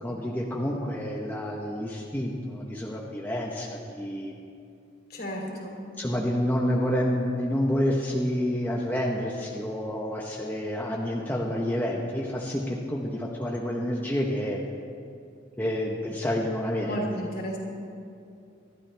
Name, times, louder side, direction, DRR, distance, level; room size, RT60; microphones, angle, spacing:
voice 1, 0.0-4.3 6.0-14.6 15.6-17.0, equal, 10° left, -2 dB, 1.1 m, -29 dB
voice 2, 5.1-5.8 16.8-17.6, equal, 55° left, -1 dB, 3.3 m, -33 dB
25.5 x 12.0 x 3.4 m, 2.6 s
head